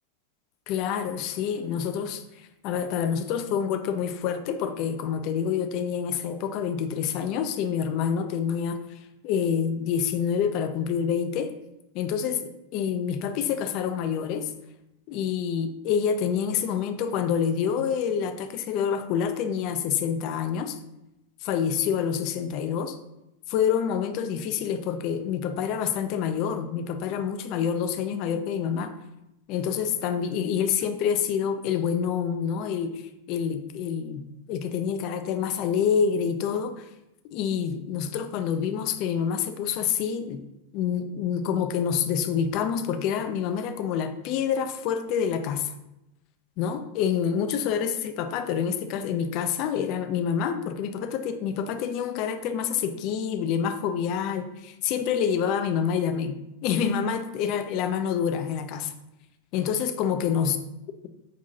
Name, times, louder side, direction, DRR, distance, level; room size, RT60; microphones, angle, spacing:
voice 1, 0.7-8.8 9.2-11.5 11.9-14.5 15.1-20.8 21.4-23.0 23.5-28.9 29.5-32.9 33.3-34.2 34.5-36.9 37.3-40.4 40.7-45.7 46.6-58.9 59.5-60.6, left 7 dB, 40° left, 8 dB, 0.3 m, -27 dB
5.2 x 2.7 x 2.6 m, 0.89 s
figure-of-eight pair, 90°, 0 cm